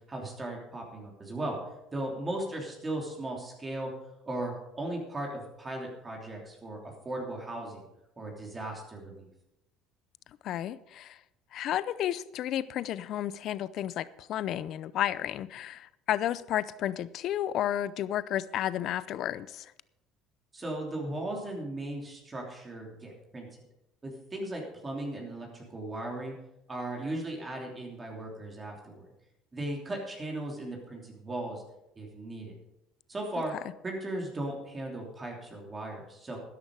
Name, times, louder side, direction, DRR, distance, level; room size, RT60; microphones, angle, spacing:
voice 1, 0.0-1.6 1.9-3.9 4.3-7.8 8.2-9.3 20.5-23.5 24.0-26.3 26.7-29.1 29.5-31.6 32.0-32.5 33.1-33.5 33.8-36.4, right 1 dB, 20° right, 0 dB, 3.1 m, -37 dB
voice 2, 10.4-11.2 11.5-19.7, left 11 dB, 55° left, 17 dB, 0.5 m, -32 dB
12.5 x 11.0 x 4.8 m, 0.87 s
cardioid pair, 120°, 0 cm